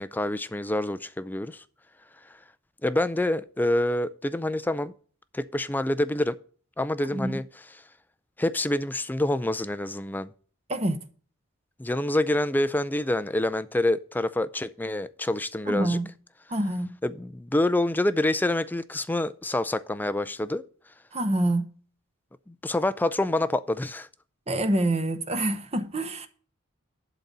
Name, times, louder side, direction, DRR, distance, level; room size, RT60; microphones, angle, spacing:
voice 1, 0.0-1.6 2.8-4.9 5.3-6.4 6.8-7.4 8.4-10.3 11.8-16.0 17.0-20.6 22.5-24.1, left 1 dB, 10° left, 0.4 m, -27 dB
voice 2, 15.7-16.1 16.5-16.9 21.1-21.7 24.5-26.3, right 1 dB, 30° right, 0.9 m, -26 dB
12.0 x 4.0 x 7.3 m
head